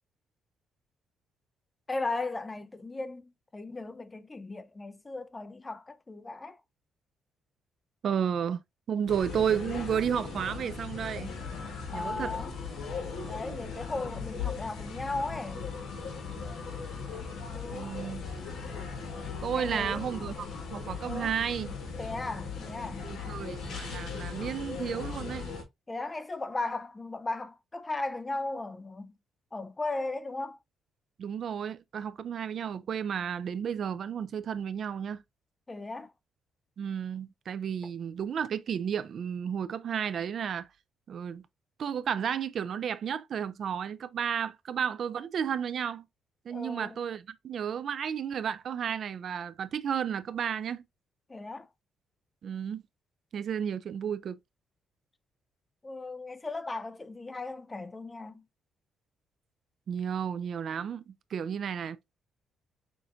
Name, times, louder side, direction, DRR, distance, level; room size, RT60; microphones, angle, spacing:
voice 1, 1.9-6.6 11.9-12.5 13.3-15.7 17.5-17.9 19.5-20.4 21.0-21.3 22.0-23.1 25.9-29.1 29.5-30.6 35.7-36.1 46.5-47.0 51.3-51.7 55.8-58.4, left 2 dB, 20° left, 0.6 m, -37 dB
voice 2, 8.0-8.6 8.9-11.3 11.9-12.3 17.7-18.2 19.4-20.3 20.7-21.7 23.0-25.5 31.2-35.2 36.8-40.7 41.1-41.5 41.8-46.1 46.5-50.8 52.4-52.8 53.3-54.4 59.9-62.0, right 8 dB, 60° right, 0.4 m, -32 dB
sound 1, 9.1-25.6, left 5 dB, 75° left, 1.5 m, -38 dB
6.1 x 2.5 x 2.6 m
cardioid pair, 90°, 0 cm